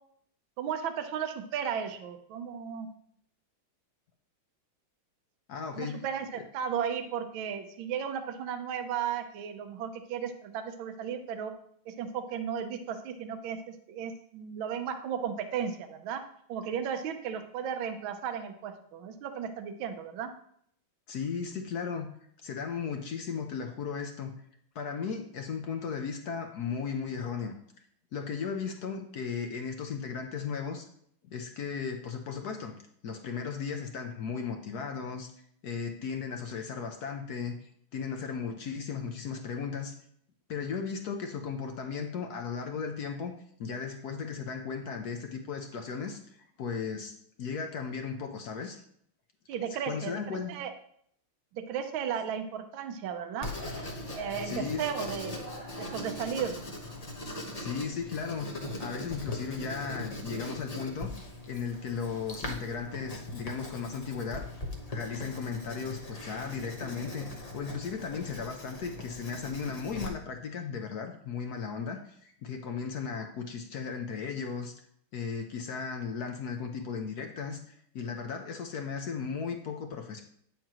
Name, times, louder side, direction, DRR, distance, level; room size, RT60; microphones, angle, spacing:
voice 1, 0.6-2.9 5.7-11.5 11.9-16.2 16.5-20.3 49.5-50.7 51.5-53.5 54.2-55.3 55.8-56.6, right 8 dB, 70° right, 8 dB, 1.5 m, -35 dB
voice 2, 5.5-6.0 21.1-22.1 22.4-24.3 24.7-27.6 28.1-30.9 31.2-32.7 33.0-35.3 35.6-39.9 40.5-43.3 43.6-47.1 47.4-48.8 49.9-50.5 54.4-54.8 57.6-58.5 58.8-61.1 61.5-64.5 64.9-74.7 75.1-80.2, left 6 dB, 65° left, 4 dB, 1.0 m, -36 dB
Writing, 53.4-70.1, left 1 dB, 35° left, 0.6 m, -40 dB
9.1 x 7.3 x 3.0 m, 0.66 s
omnidirectional pair, 2.4 m